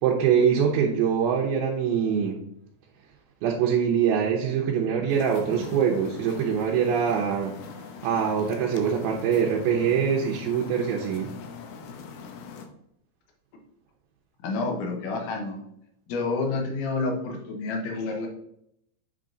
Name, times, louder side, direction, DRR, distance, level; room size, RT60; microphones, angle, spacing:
voice 1, 0.0-2.4 3.4-7.6 8.0-11.3, right 7 dB, 85° right, -1 dB, 2.5 m, -24 dB
sound 1, 5.1-12.7, left 6 dB, 85° left, 2.6 m, -41 dB
voice 2, 14.4-15.6 16.1-18.3, left 3 dB, 65° left, 2 dB, 2.4 m, -29 dB
7.7 x 3.7 x 3.8 m, 0.76 s
omnidirectional pair, 4.3 m